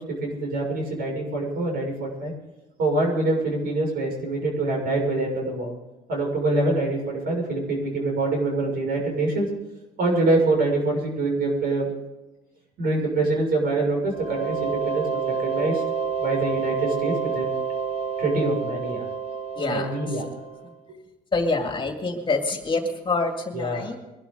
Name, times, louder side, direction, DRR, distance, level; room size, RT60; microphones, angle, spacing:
voice 1, 0.0-2.3 2.8-5.7 6.1-9.5 10.0-11.9 12.8-15.8 16.2-17.4 18.2-19.1 19.6-20.2 23.5-23.9, right 2 dB, 65° right, 0 dB, 6.5 m, -25 dB
sound 1, 14.1-20.7, right 6 dB, 40° right, 1.5 m, -29 dB
voice 2, 19.5-20.2 20.6-20.7 21.3-24.0, left 3 dB, 30° left, 4 dB, 2.3 m, -26 dB
22.5 x 12.0 x 3.9 m, 1.0 s
cardioid pair, 110°, 17 cm